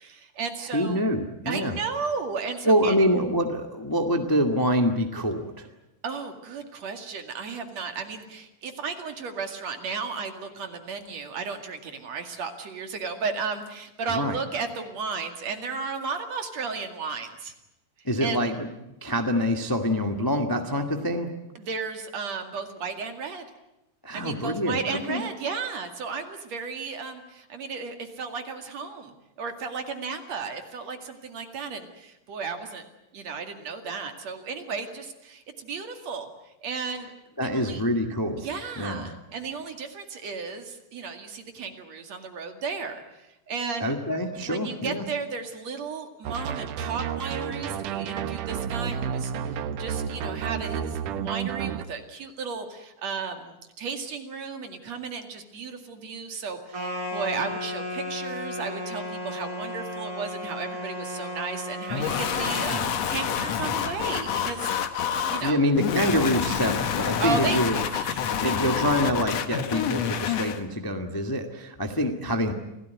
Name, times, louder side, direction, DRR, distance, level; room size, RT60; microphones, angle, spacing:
voice 1, 0.0-1.0 1.5-3.0 6.0-17.5 18.2-18.4 21.5-23.5 24.1-32.8 33.1-36.3 36.6-37.1 37.4-37.8 38.4-43.9 44.5-64.7 65.3-65.6 67.2-68.5 72.5-72.6, right 5 dB, 60° right, 6 dB, 3.3 m, -34 dB
voice 2, 0.7-1.8 2.6-5.7 14.1-14.4 18.0-18.7 19.0-21.3 24.0-25.2 37.4-38.5 38.8-39.1 43.8-45.0 62.6-62.9 65.4-67.8 68.4-72.5, equal, 10° left, 4 dB, 1.2 m, -25 dB
sound 1, 46.2-51.8, right 8 dB, 80° right, 2.6 m, -31 dB
sound 2, 56.7-62.7, left 1 dB, 25° right, 6.4 m, -34 dB
sound 3, 61.9-70.6, left 8 dB, 60° left, 2.3 m, -28 dB
27.5 x 17.0 x 9.5 m, 0.90 s
omnidirectional pair, 3.6 m